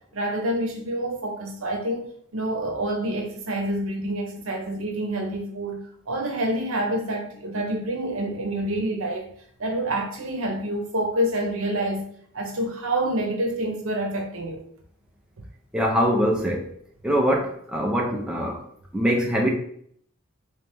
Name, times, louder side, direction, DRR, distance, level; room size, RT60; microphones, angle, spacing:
voice 1, 0.1-5.8 6.1-9.3 9.6-12.1 12.3-14.6, right 1 dB, 70° right, 2 dB, 0.8 m, -27 dB
voice 2, 15.7-16.7 17.0-18.6 18.9-19.5, equal, 5° right, -1 dB, 0.4 m, -23 dB
3.3 x 3.0 x 3.2 m, 0.64 s
head